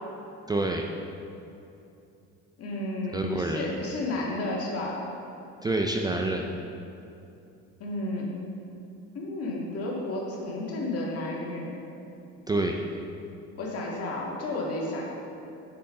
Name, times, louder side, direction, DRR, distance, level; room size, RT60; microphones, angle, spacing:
voice 1, 0.5-0.8 3.1-3.7 5.6-6.4 12.5-12.7, right 2 dB, 15° right, 1 dB, 0.4 m, -27 dB
voice 2, 2.6-5.0 7.8-8.3 9.1-11.7 13.5-15.0, left 2 dB, 55° left, -3 dB, 1.8 m, -32 dB
7.2 x 7.0 x 3.7 m, 2.7 s
cardioid pair, 115°, 29 cm